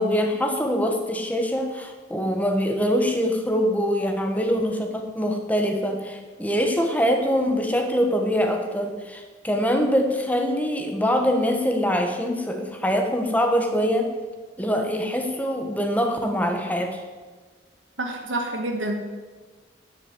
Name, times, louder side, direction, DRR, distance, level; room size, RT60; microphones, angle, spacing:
voice 1, 0.0-14.1 14.6-17.0, equal, 10° left, 4 dB, 1.3 m, -24 dB
voice 2, 18.0-19.1, right 1 dB, 90° right, 2 dB, 1.8 m, -28 dB
10.0 x 6.7 x 8.3 m, 1.4 s
head